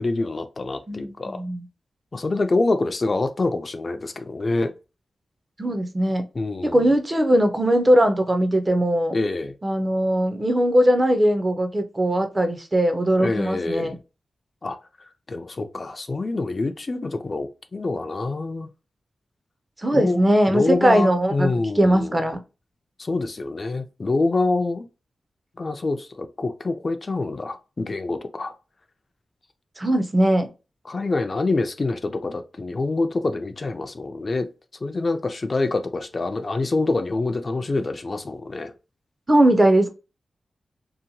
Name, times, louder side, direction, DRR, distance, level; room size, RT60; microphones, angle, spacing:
voice 1, 0.0-1.4 2.1-4.7 6.3-6.9 9.1-9.6 13.2-14.0 14.6-14.8 15.3-18.7 19.9-20.2 20.5-22.2 23.0-24.9 25.6-28.5 30.9-34.5 34.8-38.7, left 3 dB, 35° left, 0.3 m, -26 dB
voice 2, 0.9-1.6 5.6-6.3 6.7-9.1 9.6-13.9 19.8-21.5 21.8-22.4 29.8-30.5 39.3-39.9, right 1 dB, 25° right, 0.5 m, -20 dB
2.7 x 2.1 x 2.6 m
wide cardioid pair, 120°, 0 cm